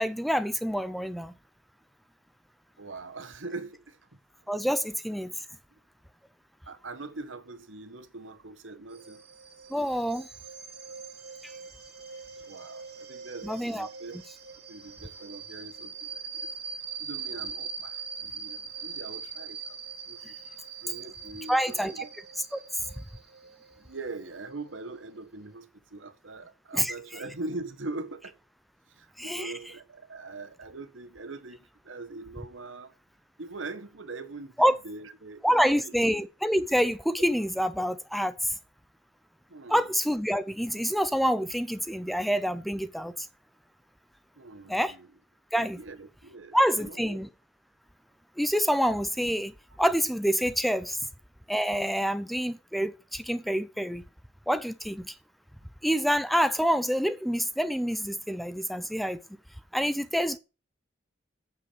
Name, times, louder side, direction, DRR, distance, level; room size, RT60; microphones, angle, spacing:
voice 1, 0.0-1.3 4.5-5.3 9.7-10.3 13.4-13.9 21.5-21.9 26.7-27.2 29.2-29.5 34.6-34.8 35.4-38.3 39.7-43.3 44.7-44.9 45.5-45.8 46.5-47.3 48.4-49.5 49.8-51.0 51.5-54.0 54.5-55.1 55.8-59.2 59.7-60.4, equal, ahead, 0.6 m, -27 dB
voice 2, 2.8-4.0 6.7-9.2 12.4-14.2 14.7-16.5 17.0-20.4 20.8-22.1 23.8-28.4 28.9-32.9 33.4-36.0 39.5-39.8 44.3-45.1 45.8-47.2, right 3 dB, 90° right, 1.5 m, -42 dB
sound 1, 8.9-25.2, right 6 dB, 55° right, 3.1 m, -42 dB
8.6 x 7.6 x 8.5 m
head